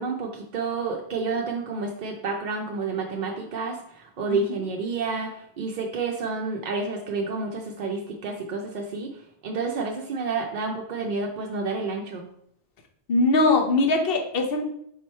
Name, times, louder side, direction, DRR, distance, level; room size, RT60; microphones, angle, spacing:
voice 1, 0.0-9.1 9.4-12.2, right 4 dB, 55° right, 1 dB, 0.6 m, -29 dB
voice 2, 13.1-14.6, left 2 dB, 65° left, 4 dB, 0.9 m, -21 dB
3.7 x 3.0 x 4.3 m, 0.72 s
omnidirectional pair, 1.1 m